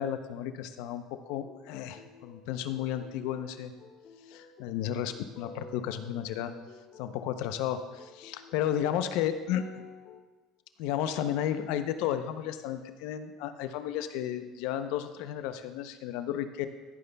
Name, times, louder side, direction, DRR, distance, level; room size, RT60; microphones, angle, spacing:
voice 1, 0.0-3.7 4.3-6.5 7.0-9.7 10.8-16.7, left 10 dB, 75° left, 10 dB, 0.6 m, -33 dB
sound 1, 1.2-10.2, left 4 dB, 55° left, 1.4 m, -52 dB
13.5 x 9.3 x 2.3 m, 1.2 s
supercardioid pair, 110°, 0 cm